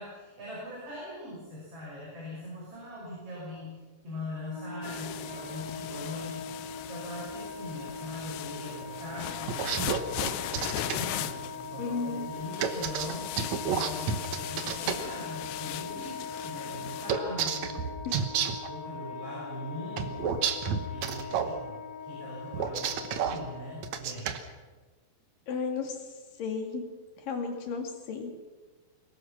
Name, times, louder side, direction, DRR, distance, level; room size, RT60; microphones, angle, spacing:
voice 1, 0.0-13.3 13.6-18.0 18.7-20.3 20.8-24.4, left 1 dB, 35° right, -5 dB, 7.1 m, -41 dB
Wind instrument woodwind instrument, 4.4-23.9, left 4 dB, 25° left, 3.5 m, -41 dB
sound 1, 4.8-17.1, left 14 dB, 90° left, 2.9 m, -39 dB
sound 2, 9.5-11.0 12.6-15.0 17.1-18.7 20.0-21.5 22.5-23.4 23.8-24.4, right 7 dB, 65° right, 1.9 m, -30 dB
voice 2, 11.8-12.3 18.1-18.3 25.5-26.0 26.4-26.8 27.2-28.3, left 5 dB, 60° left, 4 dB, 3.5 m, -33 dB
23.0 x 19.5 x 6.1 m, 1.3 s
omnidirectional pair, 4.8 m